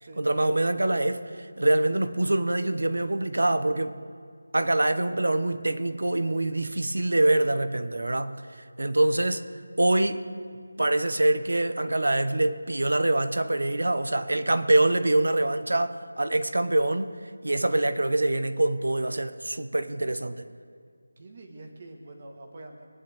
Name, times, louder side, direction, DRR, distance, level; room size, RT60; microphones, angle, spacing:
voice 1, 0.2-4.0 4.5-9.4 9.8-10.3 10.8-20.4, right 2 dB, 75° right, 1.0 m, -25 dB
voice 2, 21.2-22.9, right 2 dB, 25° right, 1.5 m, -45 dB
24.0 x 10.5 x 3.5 m
figure-of-eight pair, 175°, 0 cm